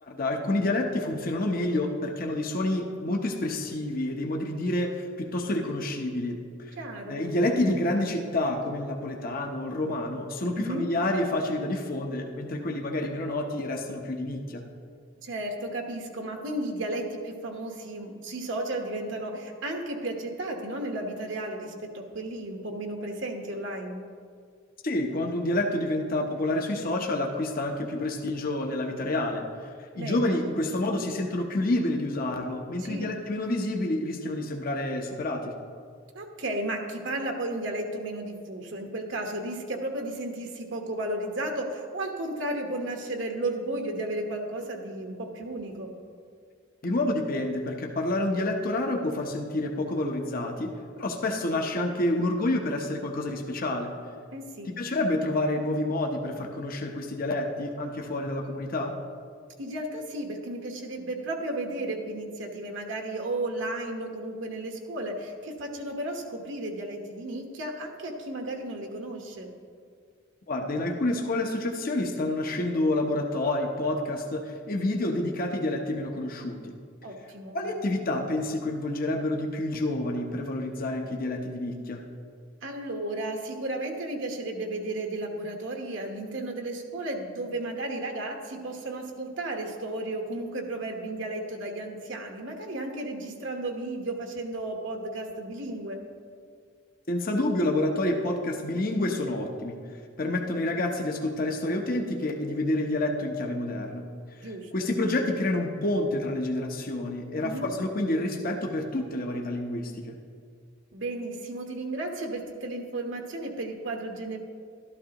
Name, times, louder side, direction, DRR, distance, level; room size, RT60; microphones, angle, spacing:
voice 1, 0.0-6.7 7.1-14.6 24.8-29.5 29.9-35.5 46.8-50.7 51.0-53.9 54.7-58.9 70.5-76.7 77.5-82.0 97.1-99.8 100.2-104.1 104.4-104.5 104.7-110.2, left 1 dB, 45° left, 2 dB, 0.8 m, -28 dB
voice 2, 6.8-7.2 10.6-10.8 15.2-24.0 30.0-30.4 32.8-33.2 36.1-45.9 54.3-54.7 59.6-69.5 77.0-77.6 82.6-96.0 104.4-104.9 107.4-107.7 110.9-114.4, right 1 dB, 75° right, 2 dB, 1.2 m, -34 dB
12.5 x 12.0 x 2.9 m, 2.1 s
head